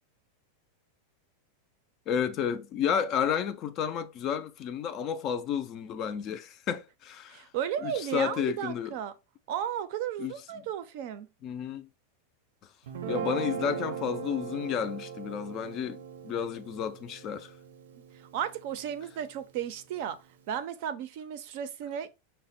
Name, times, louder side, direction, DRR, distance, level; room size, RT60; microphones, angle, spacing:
voice 1, 2.1-7.4 7.8-8.9 10.2-10.3 11.4-11.9 13.1-17.5, left 8 dB, 25° left, 0.4 m, -31 dB
voice 2, 7.3-9.1 9.5-11.3 18.3-20.2 20.5-22.1, right 9 dB, 45° right, 0.5 m, -34 dB
Guitar, 12.9-19.2, right 7 dB, 90° right, 0.6 m, -39 dB
5.7 x 2.1 x 4.1 m
supercardioid pair, 175°, 0 cm